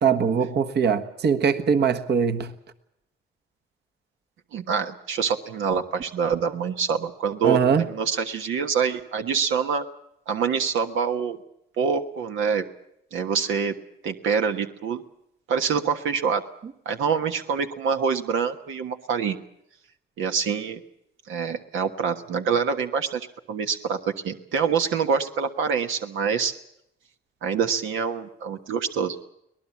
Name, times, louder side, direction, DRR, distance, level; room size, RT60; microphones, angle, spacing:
voice 1, 0.0-2.5 7.4-7.9, right 7 dB, 55° right, 9 dB, 1.5 m, -21 dB
voice 2, 4.5-7.6 7.9-9.8 10.3-11.4 11.8-12.6 13.1-13.7 14.0-15.0 15.5-16.4 16.8-19.4 20.2-20.8 21.3-26.5 27.4-29.2, right 6 dB, 80° right, 6 dB, 1.4 m, -25 dB
24.0 x 19.0 x 7.3 m, 0.77 s
cardioid pair, 90°, 20 cm